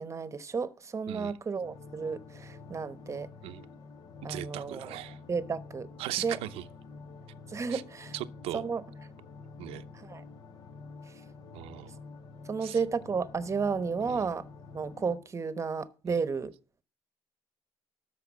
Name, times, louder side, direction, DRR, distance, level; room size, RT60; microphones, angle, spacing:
voice 1, 0.0-3.3 4.2-4.9 5.3-5.9 6.2-6.4 7.5-8.1 8.5-8.8 10.1-10.2 12.5-14.4 14.7-16.5, right 5 dB, 30° right, 1.0 m, -32 dB
voice 2, 1.1-1.4 3.4-3.6 4.3-5.2 6.0-6.6 7.7-7.8 8.1-8.6 9.6-9.9 11.5-12.0 12.6-12.8 14.1-14.3 16.1-16.2, right 15 dB, 80° right, 0.8 m, -38 dB
sound 1, 1.6-15.2, left 4 dB, 45° left, 1.1 m, -48 dB
13.0 x 4.8 x 7.1 m
cardioid pair, 85°, 10 cm